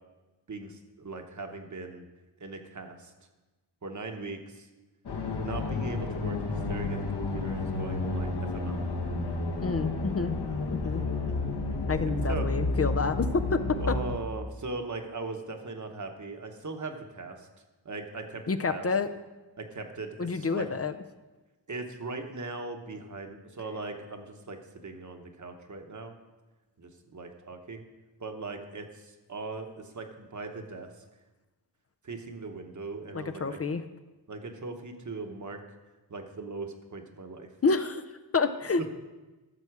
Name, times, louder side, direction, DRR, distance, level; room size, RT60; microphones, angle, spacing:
voice 1, 0.5-2.0 2.4-3.1 3.8-4.7 5.4-8.8 10.8-11.9 12.3-12.5 13.8-17.5 17.8-18.4 18.7-18.9 19.6-20.7 21.7-26.1 26.8-27.8 28.2-30.9 32.0-33.6 34.3-35.6 36.1-37.5, right 3 dB, 40° right, 5 dB, 1.1 m, -39 dB
sound 1, 5.1-14.2, left 3 dB, 65° left, 1.3 m, -31 dB
voice 2, 9.6-10.3 10.7-11.0 11.9-13.6 13.9-14.0 18.5-19.1 20.2-20.9 33.1-33.8 37.6-38.0 38.3-38.8, left 4 dB, 35° left, 9 dB, 0.5 m, -28 dB
12.5 x 7.0 x 4.8 m, 1.2 s
wide cardioid pair, 130°, 43 cm